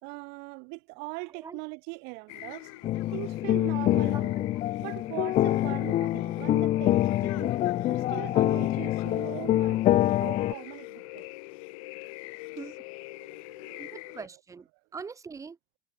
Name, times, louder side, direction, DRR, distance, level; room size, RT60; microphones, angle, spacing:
voice 1, 0.0-4.3 4.8-7.5 7.9-11.3 13.2-13.9, right 34 dB, 70° right, 5.7 m, -41 dB
sound 1, 2.3-14.3, left 26 dB, 85° left, 4.7 m, -45 dB
sound 2, 2.8-10.5, left 14 dB, 40° left, 1.1 m, -26 dB
voice 2, 3.9-4.5 6.0-6.1 12.6-12.8 13.8-15.6, right 5 dB, 20° right, 4.8 m, -43 dB
cardioid pair, 145°, 17 cm